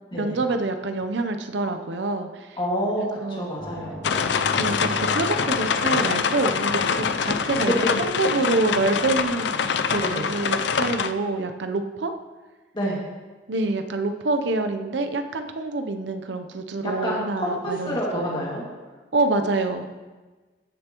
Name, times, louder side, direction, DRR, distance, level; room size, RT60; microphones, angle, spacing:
voice 1, 0.1-2.6 3.0-3.5 4.6-7.7 8.0-9.6 9.9-12.1 13.5-18.4 19.1-19.9, right 2 dB, 80° right, 7 dB, 0.6 m, -26 dB
voice 2, 2.6-4.0 10.0-10.3 12.7-13.0 16.8-18.6, equal, 25° left, -4 dB, 2.1 m, -28 dB
sound 1, 3.6-7.4, right 1 dB, 20° right, 2.3 m, -38 dB
sound 2, 4.0-11.1, left 6 dB, 75° left, 0.4 m, -24 dB
15.0 x 6.9 x 3.0 m, 1.3 s
head